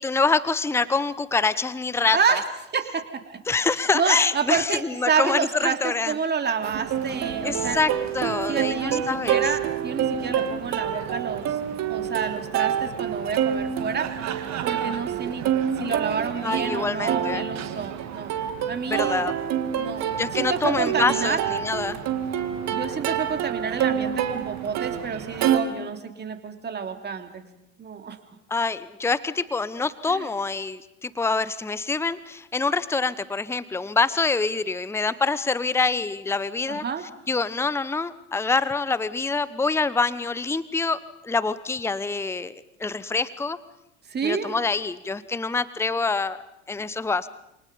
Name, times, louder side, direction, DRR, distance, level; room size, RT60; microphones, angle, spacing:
voice 1, 0.0-2.4 3.5-6.1 7.4-9.5 16.4-17.4 18.9-19.3 20.2-22.0 28.5-36.8 37.3-42.5 42.8-43.6 44.2-46.4 46.7-47.3, left 4 dB, 5° left, 17 dB, 1.0 m, -25 dB
voice 2, 2.1-2.4 2.7-3.4 3.9-7.8 8.5-11.6 11.9-14.1 14.6-15.5 15.8-18.3 18.7-19.3 19.8-21.4 22.7-27.4 27.8-28.2 30.1-30.3 36.7-37.0 44.1-44.5, right 6 dB, 25° right, 6 dB, 2.9 m, -29 dB
Plucked string instrument, 6.6-25.6, right 9 dB, 45° right, 2.3 m, -27 dB
28.5 x 28.0 x 5.3 m, 0.85 s
figure-of-eight pair, 70°, 39 cm